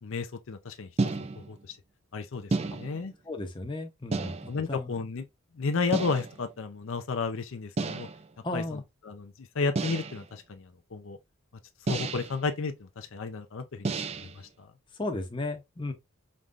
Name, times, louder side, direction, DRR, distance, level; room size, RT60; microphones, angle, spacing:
voice 1, 0.0-0.9 1.4-1.8 2.1-3.1 4.5-5.3 5.6-8.1 8.5-11.2 11.9-13.9 14.4-14.7, left 4 dB, 65° left, 0.5 m, -33 dB
sound 1, 1.0-1.6 2.5-3.1 4.1-4.7 5.9-6.4 7.8-8.3 9.7-10.3 11.9-12.4 13.8-14.4, right 3 dB, 30° right, 0.4 m, -32 dB
voice 2, 3.2-4.3 4.7-4.9 8.4-8.8 15.0-15.9, left 2 dB, 20° left, 0.7 m, -34 dB
5.2 x 3.2 x 2.4 m
head